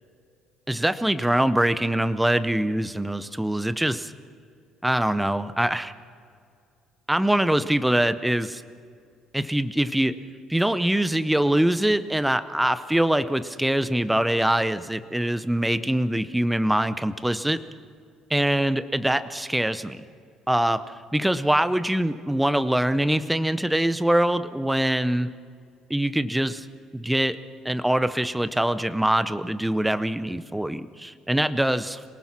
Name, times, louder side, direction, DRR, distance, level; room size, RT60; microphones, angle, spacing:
voice 1, 0.7-4.1 4.8-5.9 7.1-8.6 9.3-10.1 10.5-17.6 18.3-20.0 20.5-20.8 21.1-25.3 25.9-26.6 26.9-27.4 27.6-32.0, right 1 dB, 5° right, 12 dB, 0.6 m, -23 dB
26.5 x 18.5 x 6.0 m, 2.3 s
cardioid pair, 160°, 0 cm